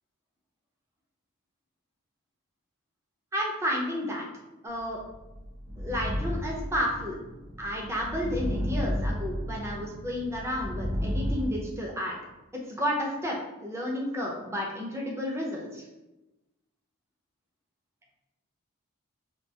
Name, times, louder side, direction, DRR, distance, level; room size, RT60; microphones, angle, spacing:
voice 1, 3.3-4.3 4.6-5.0 5.8-7.2 7.6-12.1 12.7-13.4 13.6-15.8, equal, 10° right, -1 dB, 0.3 m, -31 dB
sound 1, 5.0-11.5, equal, 60° right, 0.7 m, -33 dB
2.3 x 2.1 x 2.7 m, 1.0 s
head